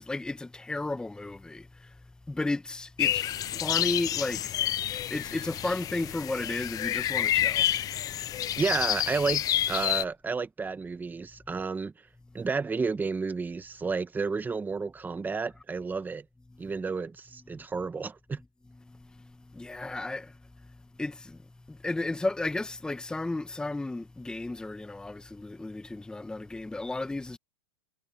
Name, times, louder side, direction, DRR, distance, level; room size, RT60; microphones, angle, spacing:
voice 1, 0.0-4.7 4.9-7.7 16.5-16.7 17.5-17.6 18.8-21.4 21.7-27.4, left 2 dB, 5° left, 1.1 m, -34 dB
sound 1, 3.0-10.0, left 12 dB, 25° left, 0.4 m, -29 dB
voice 2, 8.6-11.9 12.3-16.2 16.6-18.4, right 4 dB, 10° right, 1.3 m, -31 dB
hypercardioid pair, 130°, 16 cm